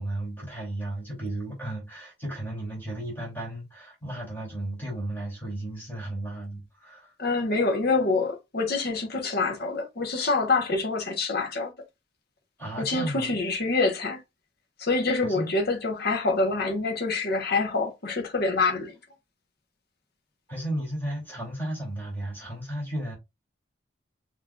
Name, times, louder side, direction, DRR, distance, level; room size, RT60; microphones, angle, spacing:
voice 1, 0.0-7.1 12.6-13.4 15.2-15.5 20.5-23.2, right 1 dB, 10° left, 3.0 m, -34 dB
voice 2, 7.2-11.7 12.8-14.2 14.8-19.0, left 3 dB, 50° left, 1.2 m, -26 dB
6.0 x 3.0 x 2.5 m
head